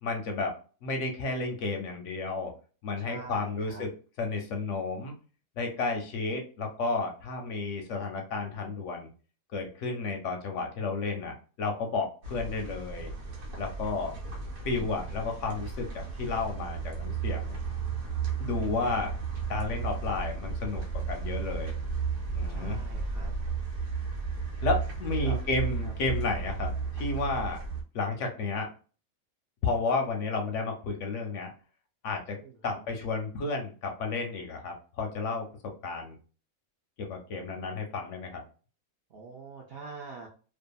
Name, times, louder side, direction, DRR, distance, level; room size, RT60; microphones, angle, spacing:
voice 1, 0.0-0.6 0.8-2.5 2.8-3.9 4.2-5.1 5.6-9.1 9.5-13.1 13.6-14.1 14.6-17.5 18.4-19.1 19.5-20.8 21.1-21.7 22.3-22.8 24.6-27.6 27.9-28.7 29.6-31.5 32.0-36.2 37.0-38.4, left 3 dB, 70° left, 3 dB, 0.8 m, -32 dB
voice 2, 3.0-3.8 22.5-23.3 25.2-25.4 25.8-25.9 32.4-32.8 39.1-40.3, right 4 dB, 65° right, -1 dB, 0.6 m, -44 dB
sound 1, 12.2-27.8, right 5 dB, 90° right, 1.3 m, -34 dB
2.6 x 2.4 x 2.3 m, 0.37 s
omnidirectional pair, 1.5 m